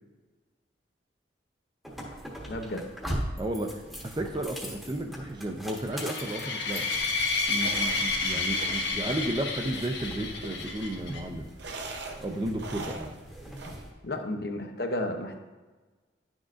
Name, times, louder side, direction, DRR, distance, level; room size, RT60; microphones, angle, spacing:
sound 1, 1.8-13.9, equal, ahead, 1.0 m, -41 dB
voice 1, 2.5-2.8 14.0-15.4, left 1 dB, 55° left, 4 dB, 0.8 m, -32 dB
voice 2, 3.4-6.9 7.5-11.5 12.2-13.2, right 1 dB, 25° right, 4 dB, 0.5 m, -33 dB
sound 2, 5.9-11.2, left 3 dB, 70° left, 1.1 m, -30 dB
sound 3, 6.9-13.8, right 2 dB, 65° right, 0.7 m, -43 dB
10.5 x 6.3 x 2.5 m, 1.3 s
head